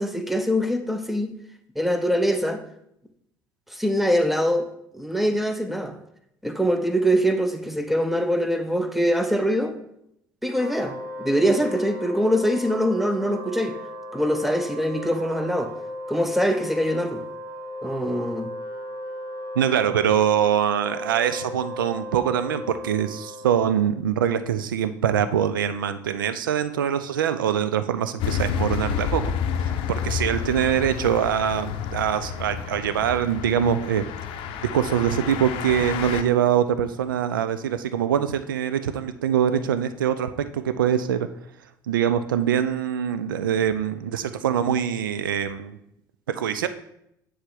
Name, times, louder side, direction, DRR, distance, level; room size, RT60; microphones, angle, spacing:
voice 1, 0.0-1.3 1.8-2.6 3.7-4.7 4.9-5.9 6.4-9.7 10.4-13.8 14.1-15.7 16.1-17.2 17.8-18.5, equal, ahead, 0.8 m, -23 dB
Wind instrument woodwind instrument, 10.5-23.9, left 1 dB, 45° right, 1.7 m, -36 dB
voice 2, 19.6-29.3 29.6-34.0 34.7-41.3 41.9-45.8 46.3-46.7, right 9 dB, 80° right, 0.4 m, -23 dB
sound 1, 28.2-36.2, left 7 dB, 55° left, 0.6 m, -29 dB
9.7 x 3.3 x 3.8 m
figure-of-eight pair, 55°, 11 cm